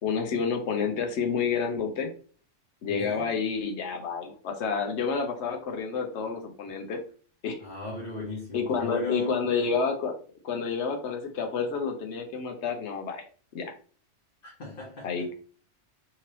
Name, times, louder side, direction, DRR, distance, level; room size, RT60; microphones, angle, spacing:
voice 1, 0.0-2.1 2.8-7.0 7.4-7.6 8.5-10.1 10.4-13.2 13.5-13.7 15.0-15.3, left 5 dB, 70° left, 1.0 m, -29 dB
voice 2, 2.9-3.3 7.6-9.6 14.4-15.3, left 3 dB, 50° left, 1.2 m, -37 dB
3.8 x 3.0 x 2.9 m
omnidirectional pair, 1.2 m